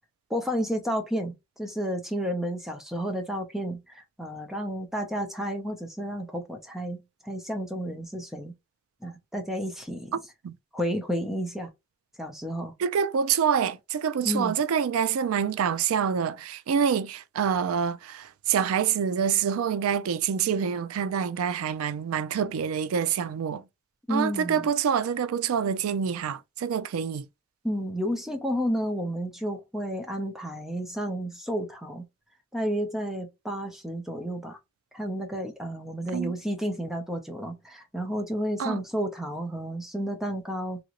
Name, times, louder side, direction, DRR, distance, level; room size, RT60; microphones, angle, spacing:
voice 1, 0.3-8.5 9.0-10.1 10.7-11.7 12.2-12.7 14.2-14.6 24.1-24.7 27.6-32.0 32.5-34.6 34.9-40.8, equal, ahead, 0.5 m, -31 dB
voice 2, 10.1-10.5 12.8-23.6 24.1-27.3 36.1-36.3 38.6-38.8, right 7 dB, 85° right, 0.4 m, -26 dB
2.9 x 2.5 x 2.8 m
head